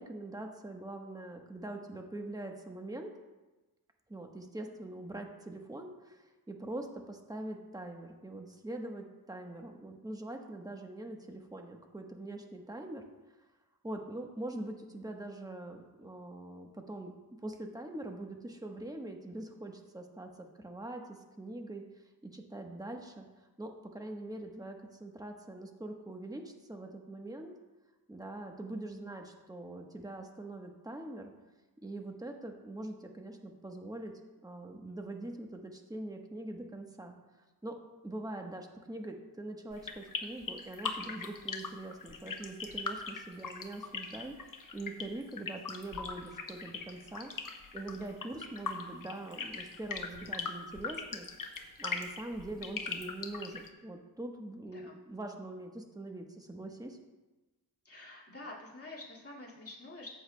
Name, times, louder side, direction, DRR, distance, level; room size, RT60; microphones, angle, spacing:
voice 1, 0.0-3.1 4.1-13.0 13.8-17.1 17.4-21.8 22.2-23.3 23.6-27.5 28.1-31.3 31.8-34.1 34.4-37.2 37.6-44.3 44.7-47.3 47.7-51.3 51.8-57.0, right 2 dB, 10° right, 3 dB, 1.1 m, -43 dB
sound 1, 39.7-53.7, left 5 dB, 55° left, 1.0 m, -40 dB
voice 2, 57.8-60.1, left 2 dB, 35° left, -4 dB, 2.2 m, -47 dB
13.5 x 7.9 x 2.2 m, 1.1 s
cardioid pair, 70°, 38 cm